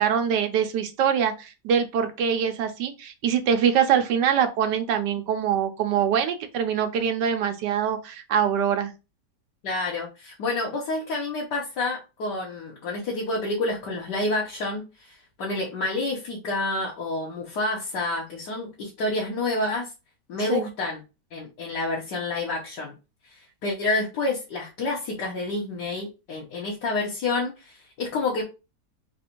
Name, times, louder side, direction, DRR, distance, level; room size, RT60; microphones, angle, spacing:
voice 1, 0.0-8.9 20.5-20.7, right 8 dB, 80° right, 7 dB, 1.4 m, -24 dB
voice 2, 9.6-19.9 20.3-21.0 21.3-22.9 23.3-28.4, left 2 dB, 75° left, -3 dB, 1.7 m, -29 dB
4.0 x 2.6 x 4.4 m, 0.29 s
omnidirectional pair, 1.8 m